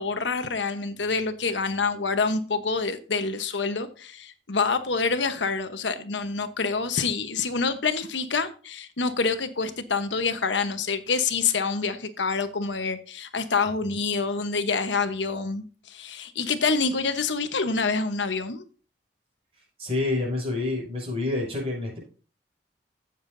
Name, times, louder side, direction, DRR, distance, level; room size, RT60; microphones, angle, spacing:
voice 1, 0.0-18.6, left 4 dB, 85° left, 1.1 m, -27 dB
voice 2, 19.8-22.0, left 2 dB, 35° right, 6.0 m, -28 dB
15.5 x 7.3 x 2.7 m
head